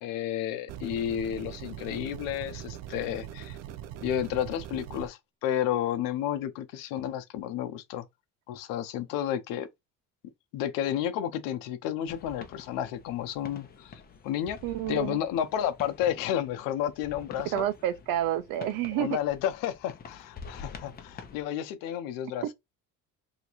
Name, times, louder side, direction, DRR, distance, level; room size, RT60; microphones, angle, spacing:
voice 1, 0.0-3.6 4.0-8.0 8.5-9.7 10.5-14.6 14.9-17.6 19.0-22.4, left 10 dB, 80° left, 0.8 m, -31 dB
sound 1, 0.7-5.1, right 11 dB, 55° right, 0.5 m, -41 dB
sound 2, 12.1-21.4, left 5 dB, 30° left, 0.7 m, -48 dB
voice 2, 14.6-15.2 17.5-19.2, right 11 dB, 80° right, 0.8 m, -29 dB
3.0 x 2.6 x 4.4 m
cardioid pair, 135°, 32 cm